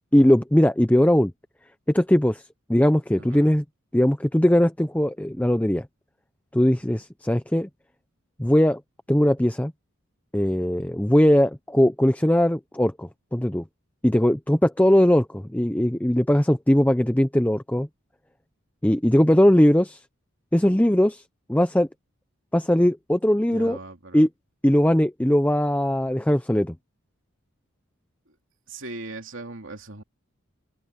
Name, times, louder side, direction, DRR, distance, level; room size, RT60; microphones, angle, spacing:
voice 1, 0.1-1.3 1.9-3.6 3.9-5.9 6.5-7.7 8.4-8.8 9.1-9.7 10.3-13.6 14.0-17.9 18.8-20.0 20.5-21.2 21.5-21.9 22.5-23.8 24.1-24.3 24.6-26.7, equal, 5° left, 0.6 m, -20 dB
voice 2, 3.2-3.6 6.7-7.0 23.5-24.3 28.7-30.0, right 2 dB, 65° right, 3.2 m, -39 dB
open air
head